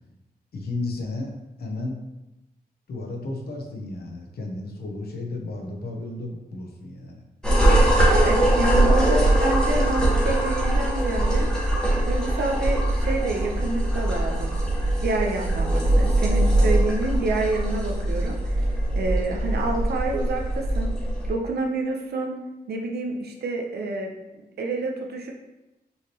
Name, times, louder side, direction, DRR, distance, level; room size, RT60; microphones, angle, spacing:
voice 1, 0.5-1.3 1.6-2.0 2.9-7.2, left 2 dB, 75° left, 1 dB, 0.9 m, -33 dB
sound 1, 7.4-21.3, right 1 dB, 5° left, 1.0 m, -22 dB
voice 2, 8.1-11.5 12.1-14.6 15.0-18.6 18.9-20.9 21.3-22.4 22.7-24.1 24.6-25.3, right 2 dB, 80° right, 2 dB, 0.7 m, -28 dB
5.5 x 3.1 x 3.0 m, 0.98 s
wide cardioid pair, 165°, 16 cm